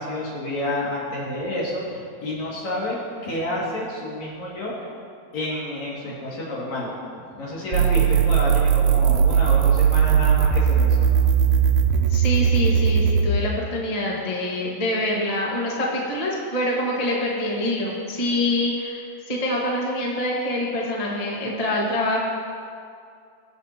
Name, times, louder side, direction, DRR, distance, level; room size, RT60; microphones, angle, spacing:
voice 1, 0.0-3.0 3.2-4.7 5.3-11.1, left 1 dB, 65° left, -5 dB, 3.6 m, -29 dB
sound 1, 7.7-13.3, right 7 dB, 85° right, 2.0 m, -18 dB
voice 2, 12.1-22.2, left 1 dB, 25° left, -3 dB, 0.8 m, -25 dB
22.0 x 7.3 x 2.9 m, 2.3 s
omnidirectional pair, 3.4 m